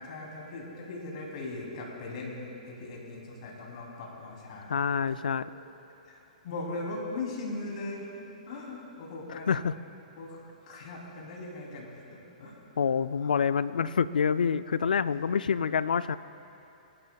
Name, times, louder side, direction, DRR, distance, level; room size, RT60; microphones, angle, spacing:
voice 1, 0.1-4.8 5.1-5.2 6.1-8.1 8.5-9.5 10.2-12.5 13.2-13.3, left 2 dB, 55° left, -2 dB, 2.9 m, -39 dB
voice 2, 4.7-5.4 9.5-9.7 12.8-16.2, left 6 dB, 90° left, 15 dB, 0.3 m, -27 dB
24.5 x 11.0 x 2.3 m, 2.9 s
hypercardioid pair, 140°, 4 cm